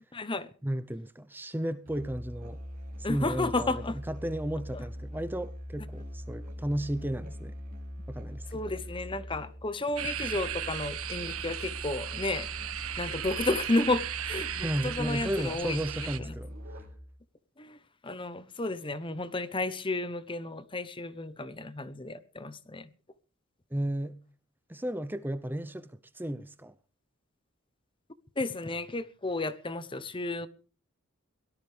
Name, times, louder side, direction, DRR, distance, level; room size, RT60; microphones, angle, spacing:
voice 1, 0.1-0.5 3.0-4.0 4.7-4.8 8.5-12.5 13.0-15.8 16.2-16.4 17.6-17.8 18.0-22.9 28.4-30.5, left 2 dB, 25° left, 0.9 m, -32 dB
voice 2, 0.6-2.6 3.1-7.5 8.1-8.6 14.6-16.5 23.7-24.2 24.7-26.7, right 1 dB, 10° right, 0.8 m, -34 dB
Musical instrument, 1.8-17.2, equal, 40° right, 6.5 m, -42 dB
sound 1, 10.0-16.2, right 10 dB, 90° right, 1.3 m, -36 dB
23.0 x 17.5 x 3.4 m
head